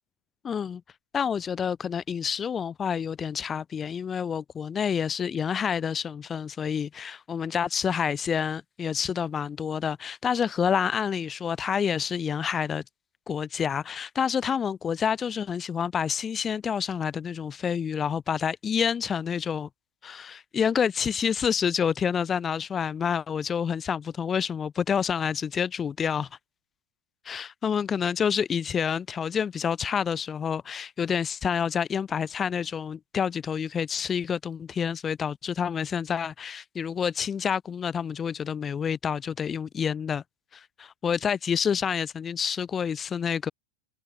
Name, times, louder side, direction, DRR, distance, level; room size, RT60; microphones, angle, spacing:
voice 1, 0.4-0.8 1.1-12.8 13.3-19.7 20.0-26.3 27.2-40.2 40.5-43.5, left 7 dB, 20° left, 0.6 m, -28 dB
figure-of-eight pair, 90°, 0 cm